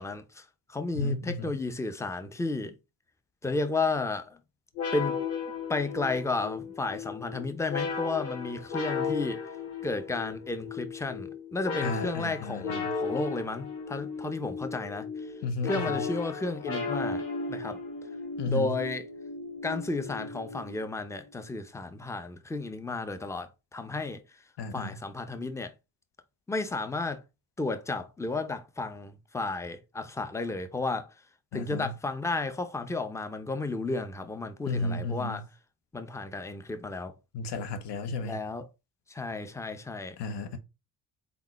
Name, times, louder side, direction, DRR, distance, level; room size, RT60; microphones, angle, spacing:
voice 1, 0.0-2.7 3.4-4.4 4.9-5.2 5.7-9.4 9.8-15.3 15.6-17.8 18.5-19.1 19.6-24.4 24.7-25.7 26.5-27.2 27.6-31.2 31.5-35.5 35.9-37.1 38.2-38.7 39.1-40.2, left 3 dB, 5° left, 0.6 m, -33 dB
voice 2, 1.0-1.5 11.8-12.9 15.4-16.0 18.4-18.7 24.6-25.0 31.5-31.9 34.7-35.4 37.3-38.4 40.2-40.6, left 2 dB, 60° left, 1.0 m, -33 dB
sound 1, 4.7-21.0, left 5 dB, 85° left, 2.0 m, -35 dB
3.8 x 3.4 x 3.0 m
hypercardioid pair, 50°, 48 cm